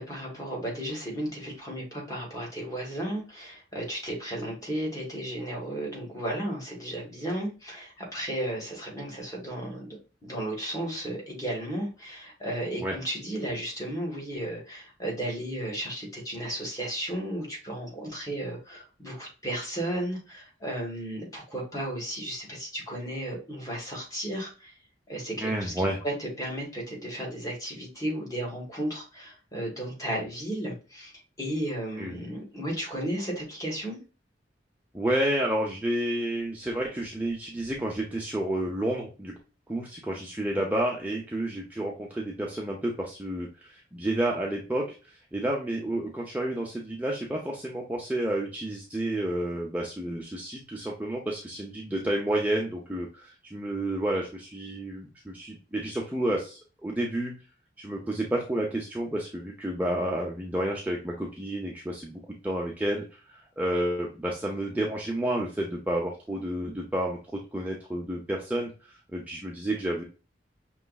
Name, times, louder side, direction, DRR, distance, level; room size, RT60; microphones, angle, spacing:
voice 1, 0.0-24.8 25.1-31.1 31.4-34.0, right 1 dB, 20° left, -3 dB, 1.5 m, -34 dB
voice 2, 25.4-26.0 32.0-32.2 34.9-39.3 39.7-57.3 57.8-70.0, right 1 dB, 10° right, -2 dB, 0.6 m, -30 dB
5.8 x 3.1 x 2.3 m, 0.33 s
head